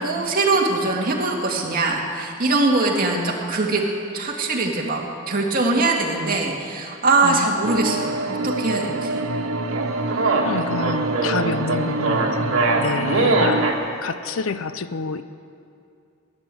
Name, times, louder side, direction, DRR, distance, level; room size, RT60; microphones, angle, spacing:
voice 1, 0.0-3.8 4.1-8.1 8.4-9.2, right 3 dB, 45° right, -1 dB, 2.4 m, -22 dB
sound 1, 7.6-13.7, right 2 dB, 90° right, 0.8 m, -26 dB
sound 2, 9.7-13.8, right 3 dB, 70° right, 2.1 m, -22 dB
voice 2, 10.4-13.7 14.0-15.2, left 4 dB, 70° left, 13 dB, 0.6 m, -28 dB
17.0 x 11.0 x 7.8 m, 2.5 s
head